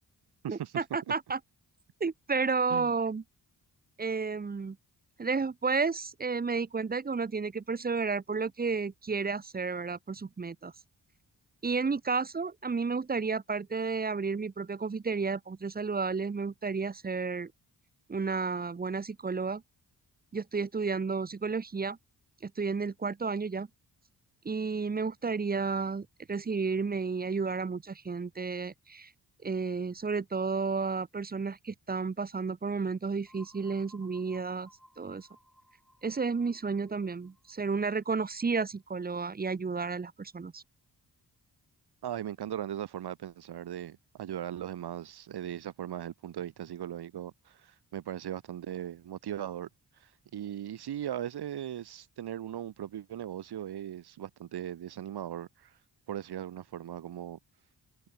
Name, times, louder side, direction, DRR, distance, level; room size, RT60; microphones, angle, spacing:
voice 1, 0.5-1.4 2.0-3.2 4.0-4.8 5.2-10.7 11.6-17.5 18.1-19.6 20.3-22.0 22.4-23.7 24.4-29.1 29.4-34.7 35.0-35.3 36.0-40.6, right 4 dB, 25° right, 0.7 m, -32 dB
sound 1, 33.3-38.9, equal, ahead, 5.1 m, -60 dB
voice 2, 42.0-49.7 50.0-55.7 56.1-57.4, right 11 dB, 75° right, 1.0 m, -38 dB
cardioid pair, 75°, 39 cm